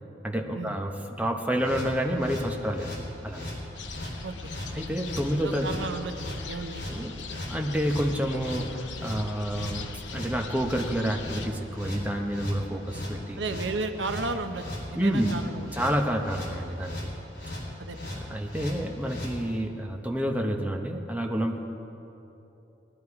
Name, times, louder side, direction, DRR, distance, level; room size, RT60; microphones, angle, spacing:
voice 1, 0.2-3.5 4.8-5.7 6.9-7.1 7.5-13.4 14.9-15.3 15.7-17.0 18.3-21.6, equal, 10° right, 2 dB, 0.9 m, -29 dB
sound 1, 1.5-19.3, left 1 dB, 60° left, 3.8 m, -38 dB
sound 2, 3.7-11.5, left 4 dB, 80° left, 0.7 m, -42 dB
voice 2, 5.4-6.9 13.4-14.6 14.9-15.8 17.8-18.0, right 3 dB, 80° right, 8 dB, 0.7 m, -33 dB
19.5 x 11.5 x 4.8 m, 3.0 s
head